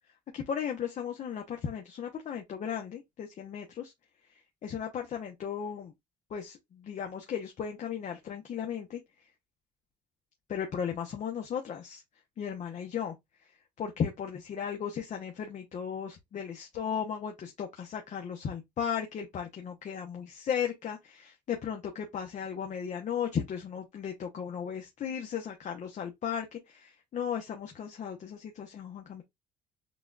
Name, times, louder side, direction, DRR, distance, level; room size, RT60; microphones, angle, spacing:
voice 1, 0.3-3.9 4.6-5.9 6.3-9.0 10.5-12.0 12.4-13.1 13.8-29.2, left 8 dB, 45° left, 0.8 m, -36 dB
6.0 x 2.3 x 2.4 m
cardioid pair, 110°, 17 cm